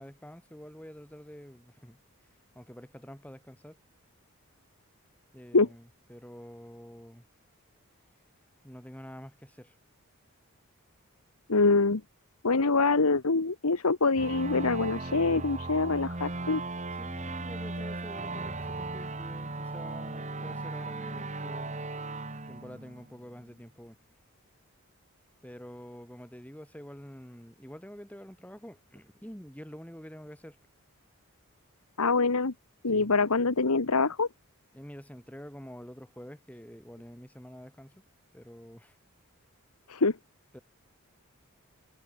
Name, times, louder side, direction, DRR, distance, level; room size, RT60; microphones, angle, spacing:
voice 1, 0.0-2.0 2.6-3.8 5.3-7.2 8.6-9.8 17.0-21.8 22.5-24.0 25.4-30.6 32.9-33.1 34.7-38.0 38.3-39.0 40.5-40.6, equal, 5° left, 5.3 m, -47 dB
voice 2, 11.5-12.0 12.4-16.6 32.0-32.5 32.8-34.3 39.9-40.2, left 3 dB, 85° left, 1.3 m, -25 dB
sound 1, 14.2-23.5, right 2 dB, 30° right, 2.1 m, -37 dB
head